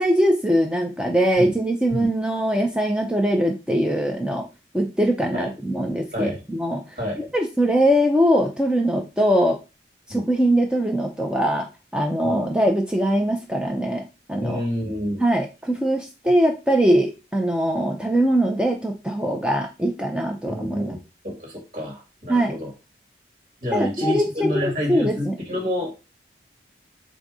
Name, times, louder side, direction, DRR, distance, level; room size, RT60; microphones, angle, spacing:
voice 1, 0.0-4.5 4.7-6.8 7.2-9.6 10.1-11.7 11.9-14.0 14.3-14.6 15.2-21.0 22.3-22.6 23.7-25.4, right 1 dB, 5° right, 1 dB, 0.4 m, -22 dB
voice 2, 6.1-6.4 7.0-7.3 10.1-10.3 12.2-12.5 14.4-15.2 16.2-16.3 20.5-21.0 21.2-22.7 23.6-25.9, left 1 dB, 50° right, 0 dB, 1.5 m, -28 dB
3.9 x 2.6 x 4.7 m, 0.29 s
head